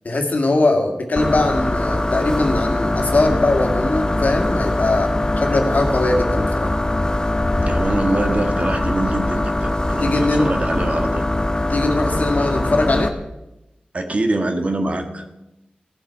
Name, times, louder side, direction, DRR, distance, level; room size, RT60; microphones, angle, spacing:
voice 1, 0.0-6.7 10.0-10.5 11.7-13.2, left 2 dB, 60° left, 3 dB, 2.0 m, -21 dB
sound 1, 1.2-13.1, left 1 dB, 25° left, 0.9 m, -22 dB
voice 2, 7.6-11.2 13.9-15.2, right 2 dB, 45° right, 5 dB, 1.5 m, -24 dB
17.5 x 7.3 x 4.6 m, 0.93 s
wide cardioid pair, 80°, 3 cm